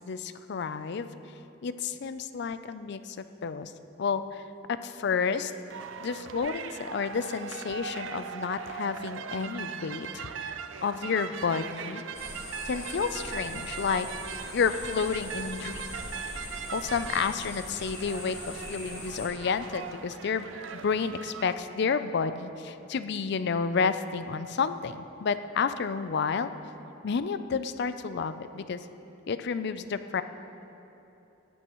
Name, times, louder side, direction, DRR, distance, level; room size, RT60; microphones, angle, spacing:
voice 1, 0.1-1.1 1.6-3.7 4.0-5.5 6.0-12.0 12.7-14.1 14.5-15.8 16.2-26.5 27.0-28.8 29.3-30.2, left 5 dB, 60° left, 12 dB, 0.4 m, -31 dB
sound 1, 5.7-21.5, right 6 dB, 70° right, 0.5 m, -40 dB
sound 2, 12.1-19.3, left 1 dB, 15° left, 2.8 m, -41 dB
17.5 x 11.5 x 3.1 m, 3.0 s
head